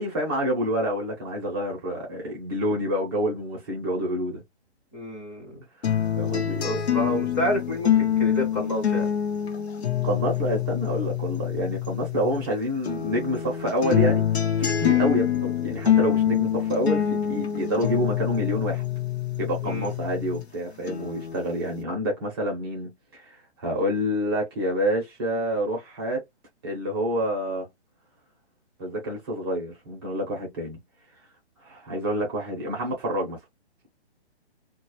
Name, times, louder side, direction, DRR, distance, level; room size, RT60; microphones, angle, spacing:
voice 1, 0.0-4.4 6.2-6.8 10.0-14.2 14.8-18.8 19.4-26.2 26.6-27.7 28.8-30.8 31.6-33.4, equal, 20° right, 0.7 m, -28 dB
voice 2, 4.9-5.4 6.6-7.9 8.2-9.1 19.6-19.9, equal, 20° left, 0.8 m, -28 dB
sound 1, 5.8-12.5 12.9-20.5 20.9-21.8, left 10 dB, 75° left, 0.9 m, -25 dB
2.3 x 2.1 x 2.9 m
hypercardioid pair, 155°, 33 cm